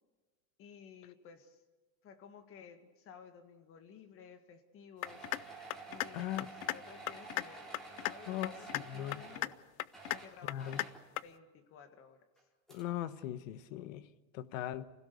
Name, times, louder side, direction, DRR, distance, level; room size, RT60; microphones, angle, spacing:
voice 1, 0.6-1.6 2.0-5.3 5.9-7.7 8.0-9.6 10.1-10.8 11.2-12.3, left 7 dB, 30° left, 1.8 m, -55 dB
sound 1, 5.0-5.4 5.7-6.1 6.4-6.8 7.1-7.4 7.7-8.1 8.4-8.8 9.1-9.5 9.8-10.2 10.5-10.9 11.2-11.3, left 18 dB, 85° left, 0.7 m, -35 dB
sound 2, 5.0-9.6 9.9-11.1 12.4-12.5 12.7-12.8, right 3 dB, ahead, 3.3 m, -50 dB
voice 2, 6.1-6.5 8.3-9.2 10.5-10.8 12.7-14.1 14.3-14.9, left 12 dB, 70° left, 1.1 m, -39 dB
26.0 x 16.5 x 6.9 m
supercardioid pair, 155°, 41 cm